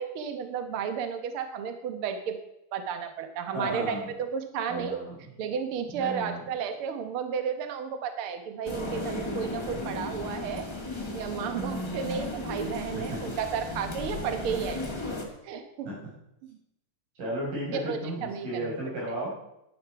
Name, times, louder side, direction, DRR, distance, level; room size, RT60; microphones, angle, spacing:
voice 1, 0.0-2.4 2.7-5.0 5.4-10.6 11.1-15.0 15.4-15.9 17.7-18.6, right 7 dB, 60° right, 7 dB, 1.5 m, -33 dB
voice 2, 3.5-4.1 4.7-5.3 5.9-6.4 11.6-12.2 12.9-13.4 15.9-16.0 17.2-19.3, right 1 dB, 80° right, -4 dB, 6.8 m, -34 dB
sound 1, 8.6-15.2, left 2 dB, 20° left, 0.6 m, -35 dB
12.5 x 11.0 x 4.6 m, 0.83 s
omnidirectional pair, 3.8 m